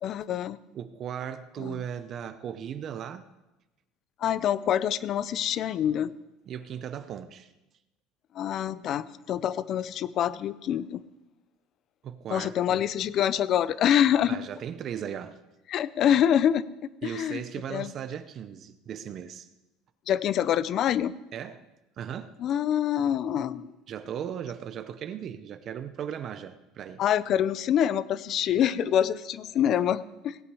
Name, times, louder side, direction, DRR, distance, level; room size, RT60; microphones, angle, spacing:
voice 1, 0.0-0.6 1.6-1.8 4.2-6.1 8.3-11.0 12.3-14.4 15.7-16.6 17.0-17.4 17.7-17.9 20.1-21.1 22.4-23.7 27.0-30.4, left 10 dB, 45° left, 17 dB, 0.5 m, -26 dB
voice 2, 0.7-3.3 6.5-7.5 12.0-12.8 14.3-15.4 17.0-19.5 21.3-21.6 22.0-22.3 23.9-27.0, right 9 dB, 40° right, 12 dB, 0.7 m, -37 dB
17.5 x 8.3 x 4.8 m, 0.98 s
cardioid pair, 150°, 0 cm